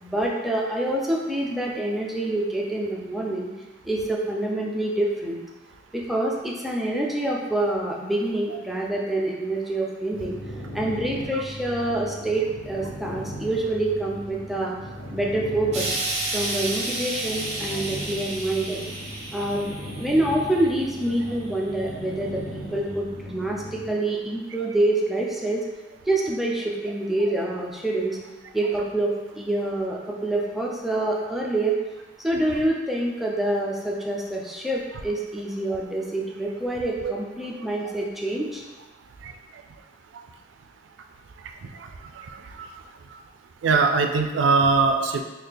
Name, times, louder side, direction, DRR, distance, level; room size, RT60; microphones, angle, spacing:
voice 1, 0.0-3.5 3.8-5.4 5.9-10.4 10.7-14.8 15.1-15.9 16.3-18.8 19.3-25.6 26.1-28.2 28.5-31.8 32.2-38.6, right 1 dB, ahead, -3 dB, 0.4 m, -26 dB
sound 1, 10.1-23.9, equal, 35° left, 0.8 m, -38 dB
Explosion, 15.7-21.0 21.9-22.0, right 2 dB, 40° right, 0.7 m, -31 dB
voice 2, 42.2-42.7 43.6-45.2, right 4 dB, 90° right, 5 dB, 0.3 m, -22 dB
3.7 x 2.3 x 3.3 m, 1.2 s
head